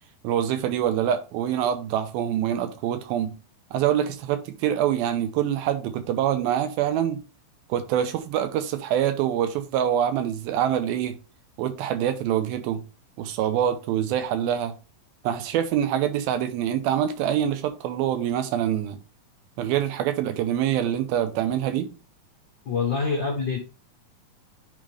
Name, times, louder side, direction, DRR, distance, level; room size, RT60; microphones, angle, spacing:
voice 1, 0.2-3.3 3.7-7.2 7.7-11.2 11.6-12.8 13.2-14.7 15.2-19.0 19.6-21.9, right 10 dB, 90° right, 2.6 m, -25 dB
voice 2, 22.6-23.6, left 5 dB, 80° left, 1.0 m, -25 dB
10.5 x 3.8 x 3.2 m
omnidirectional pair, 4.3 m